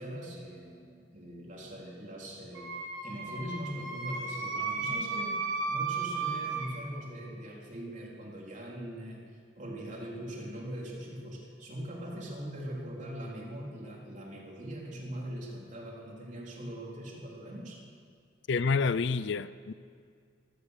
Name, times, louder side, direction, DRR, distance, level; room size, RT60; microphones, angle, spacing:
voice 1, 0.0-2.7 3.0-9.2 9.6-17.8, equal, 40° right, -3 dB, 3.9 m, -41 dB
Wind instrument woodwind instrument, 2.5-6.7, right 4 dB, 80° right, 3.8 m, -34 dB
voice 2, 18.5-19.7, left 4 dB, 60° left, 16 dB, 0.5 m, -28 dB
27.0 x 16.0 x 6.6 m, 2.2 s
head